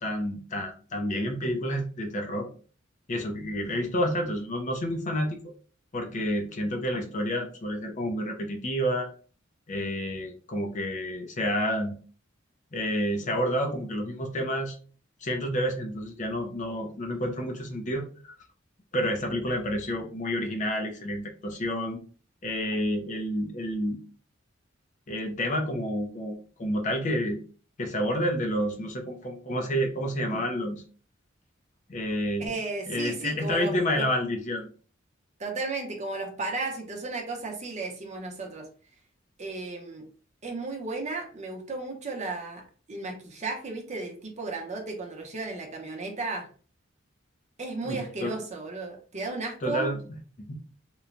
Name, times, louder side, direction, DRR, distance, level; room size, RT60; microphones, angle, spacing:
voice 1, 0.0-2.5 3.1-5.4 5.9-9.1 9.7-12.0 12.7-14.8 15.2-18.3 18.9-22.0 22.4-24.0 25.1-27.4 27.8-30.8 31.9-32.6 32.9-34.7 47.8-48.3 49.6-50.0 50.4-50.6, equal, 40° left, 2 dB, 0.5 m, -29 dB
voice 2, 32.4-34.1 35.4-38.7 39.4-40.1 40.4-46.5 47.6-49.9, right 3 dB, 35° right, 1 dB, 0.7 m, -34 dB
3.0 x 2.1 x 2.5 m, 0.40 s
head